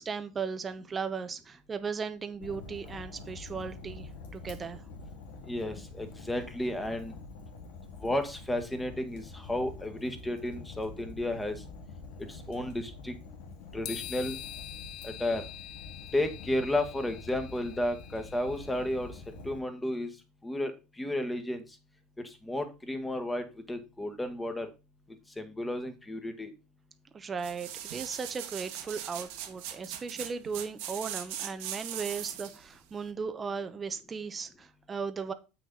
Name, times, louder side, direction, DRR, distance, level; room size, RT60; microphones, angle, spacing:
voice 1, 0.0-4.8 27.1-35.3, right 5 dB, 25° right, 0.9 m, -37 dB
Fire, 2.4-19.6, left 3 dB, 80° left, 2.1 m, -46 dB
voice 2, 5.5-7.1 8.0-11.5 12.5-13.2 13.7-14.4 15.0-15.4 16.1-19.1 19.4-20.1 20.4-20.7 21.0-21.6 22.4-24.7 25.4-26.5, left 1 dB, 10° left, 1.7 m, -32 dB
sound 1, 13.8-19.1, left 13 dB, 55° left, 0.6 m, -45 dB
sound 2, 27.4-32.6 33.1-33.2, right 11 dB, 75° right, 1.7 m, -40 dB
7.7 x 6.3 x 4.0 m
supercardioid pair, 105°, 0 cm